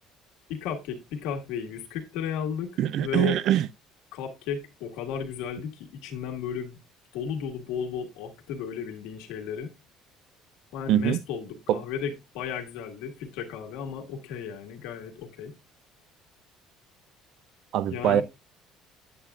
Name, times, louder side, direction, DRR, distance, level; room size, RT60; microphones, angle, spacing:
voice 1, 0.5-2.7 3.0-3.4 4.1-6.8 7.1-9.7 10.7-15.5 17.9-18.2, left 7 dB, 85° left, 1.7 m, -34 dB
voice 2, 2.8-3.7 10.9-11.2 11.7-11.8 17.7-18.2, right 11 dB, 50° right, 0.4 m, -23 dB
9.1 x 8.5 x 2.4 m
cardioid pair, 180°, 0 cm